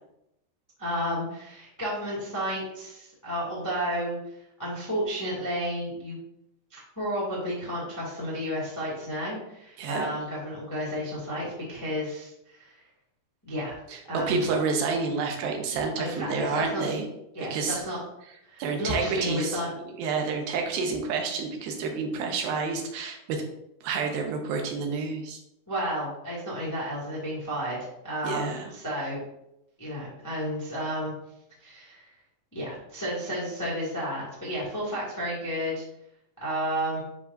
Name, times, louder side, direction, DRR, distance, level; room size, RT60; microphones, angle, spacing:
voice 1, 0.8-4.2 4.6-6.2 6.7-12.8 13.5-13.7 14.1-14.4 16.0-16.9 17.3-18.0 18.5-19.7 25.7-27.8 28.0-29.2 29.8-31.1 31.6-32.0 32.5-35.8 36.4-37.0, equal, 15° left, -7 dB, 0.6 m, -32 dB
voice 2, 13.9-17.1 17.5-17.8 18.6-19.6 19.9-23.4 23.8-25.4 28.2-28.7, right 4 dB, 85° right, 2 dB, 2.8 m, -29 dB
10.0 x 3.6 x 2.6 m, 0.82 s
omnidirectional pair, 4.2 m